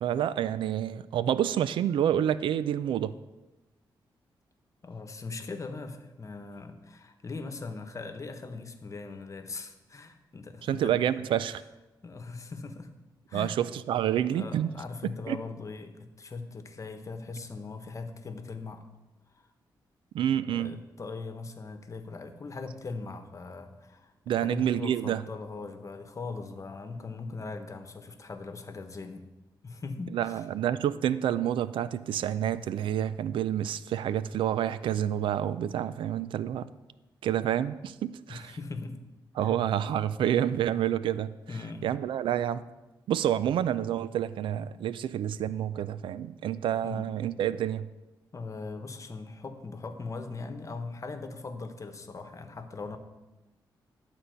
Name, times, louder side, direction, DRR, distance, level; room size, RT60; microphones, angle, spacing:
voice 1, 0.0-3.1 10.6-11.6 13.3-14.7 15.3-15.4 20.1-20.8 24.3-25.2 30.1-36.7 37.2-38.5 39.4-41.3 41.8-42.6 43.1-47.9, right 10 dB, 90° right, 15 dB, 0.4 m, -28 dB
voice 2, 4.8-11.0 12.0-12.9 13.3-13.6 14.3-18.9 19.3-19.5 20.5-29.2 29.6-30.4 38.3-39.0 39.4-39.6 41.5-41.9 46.8-47.1 48.3-53.0, left 3 dB, 40° left, 7 dB, 1.1 m, -40 dB
11.5 x 4.2 x 7.9 m, 1.1 s
cardioid pair, 80°, 8 cm